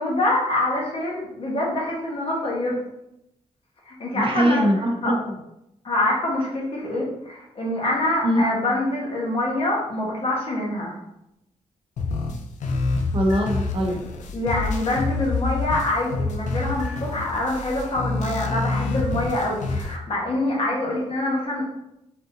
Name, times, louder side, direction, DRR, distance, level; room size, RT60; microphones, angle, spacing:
voice 1, 0.0-2.8 3.9-4.7 5.0-5.2 5.8-11.0 14.3-21.7, left 1 dB, 50° left, -3 dB, 1.2 m, -25 dB
voice 2, 4.1-5.3 8.2-8.4 13.1-14.0, equal, 45° right, 2 dB, 0.7 m, -22 dB
sound 1, 12.0-20.0, left 3 dB, 80° left, 0.5 m, -27 dB
4.2 x 3.7 x 2.6 m, 0.85 s
cardioid pair, 115°, 12 cm